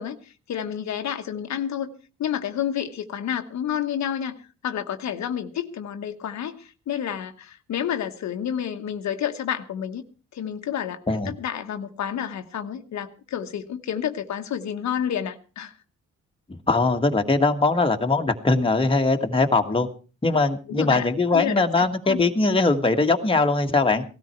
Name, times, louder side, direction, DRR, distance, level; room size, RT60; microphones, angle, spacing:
voice 1, 0.0-1.9 2.2-4.3 4.6-10.0 10.3-15.7 20.7-22.2, left 9 dB, 65° left, 6 dB, 1.3 m, -30 dB
voice 2, 16.5-19.9 20.2-24.0, left 3 dB, 20° left, 4 dB, 1.7 m, -21 dB
17.5 x 13.0 x 4.5 m, 0.36 s
cardioid pair, 90°, 30 cm